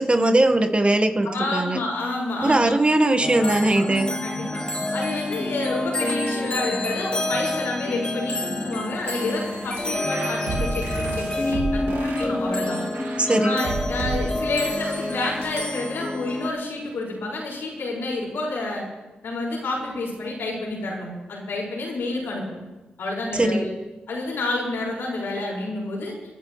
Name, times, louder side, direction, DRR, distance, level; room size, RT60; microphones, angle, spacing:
voice 1, 0.0-1.8 2.4-4.1 13.2-13.6 23.3-23.7, right 2 dB, 30° right, 6 dB, 1.6 m, -20 dB
voice 2, 1.2-2.7 3.4-3.6 3.9-12.8 13.4-18.8 19.2-22.6 23.0-23.7 24.1-26.1, left 2 dB, 80° left, -3 dB, 5.9 m, -29 dB
sound 1, 3.2-16.5, left 1 dB, 20° left, 1.8 m, -28 dB
sound 2, 9.1-15.5, right 3 dB, 85° right, 2.2 m, -33 dB
26.0 x 11.5 x 3.3 m, 1.1 s
supercardioid pair, 40°, 4 cm